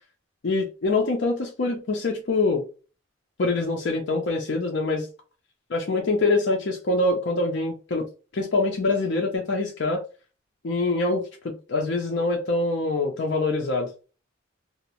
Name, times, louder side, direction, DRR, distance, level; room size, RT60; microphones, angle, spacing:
voice 1, 0.4-2.7 3.4-5.1 5.7-8.0 8.3-10.0 10.6-11.3 11.7-14.1, left 2 dB, 60° left, 0.5 m, -24 dB
2.7 x 2.0 x 2.8 m
head